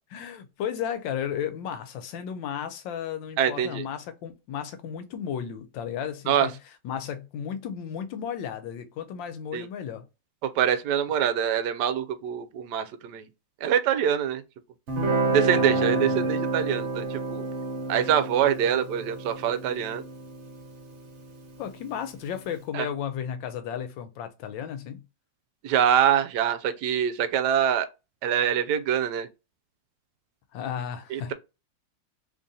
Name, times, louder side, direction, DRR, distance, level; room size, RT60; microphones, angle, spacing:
voice 1, 0.1-6.5 6.8-10.0 15.5-16.3 21.6-25.0 30.5-31.3, left 8 dB, 90° left, 1.3 m, -34 dB
voice 2, 3.4-3.9 6.3-6.5 9.5-9.7 10.4-13.3 13.6-14.4 15.3-17.4 17.9-20.0 22.7-22.9 25.6-27.9 28.2-29.3 31.1-31.3, right 9 dB, 75° right, 1.1 m, -24 dB
Guitar, 14.9-22.0, right 3 dB, 45° right, 1.1 m, -29 dB
3.2 x 2.7 x 3.7 m
omnidirectional pair, 2.0 m